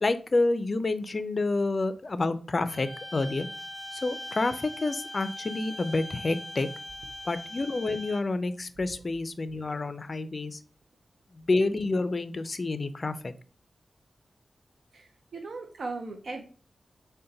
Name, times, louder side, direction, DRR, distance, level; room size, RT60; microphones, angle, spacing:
voice 1, 0.0-3.5 3.9-6.7 7.3-10.6 11.3-13.3, left 2 dB, 50° left, 12 dB, 0.4 m, -28 dB
sound 1, 2.7-8.4, equal, 5° left, 0.9 m, -41 dB
voice 2, 14.9-16.4, right 3 dB, 75° right, 4 dB, 0.5 m, -38 dB
3.8 x 2.1 x 3.9 m, 0.38 s
cardioid pair, 50°, 0 cm